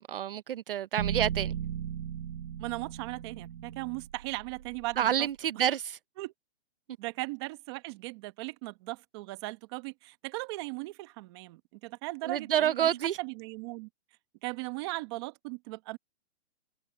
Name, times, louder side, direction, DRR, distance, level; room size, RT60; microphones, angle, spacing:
voice 1, 0.1-1.5 5.0-6.0 12.3-13.2, right 10 dB, 60° right, 0.8 m, -28 dB
sound 1, 1.0-5.2, right 9 dB, 80° right, 1.3 m, -37 dB
voice 2, 2.6-5.3 6.2-6.3 7.0-13.9 14.4-16.0, right 23 dB, 25° right, 1.3 m, -38 dB
hypercardioid pair, 165°, 32 cm